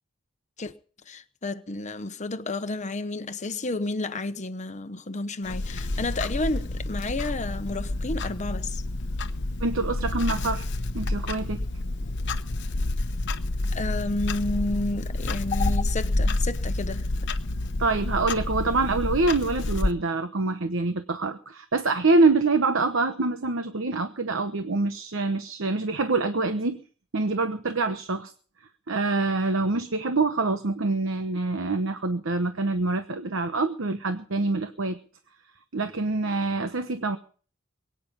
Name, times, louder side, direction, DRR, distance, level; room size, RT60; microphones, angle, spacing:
voice 1, 1.1-8.8 13.7-17.0, left 2 dB, 35° left, 1.0 m, -31 dB
Clock, 5.4-19.9, left 2 dB, 60° left, 0.9 m, -29 dB
voice 2, 9.6-10.6 10.9-11.6 17.8-26.8 27.1-28.3 28.9-35.0 35.7-37.2, right 3 dB, 65° right, 1.0 m, -25 dB
22.5 x 9.5 x 5.3 m
head